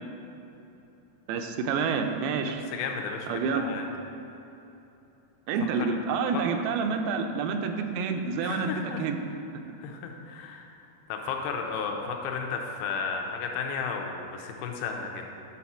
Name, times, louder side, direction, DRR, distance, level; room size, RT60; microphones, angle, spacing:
voice 1, 1.3-2.7 3.3-3.6 5.5-9.2, right 5 dB, 85° right, 6 dB, 2.4 m, -28 dB
voice 2, 2.5-3.9 6.3-6.4 8.4-9.1 9.8-10.7 11.1-15.2, left 5 dB, 85° left, 2 dB, 2.5 m, -33 dB
9.4 x 4.2 x 5.8 m, 3.0 s
omnidirectional pair, 4.4 m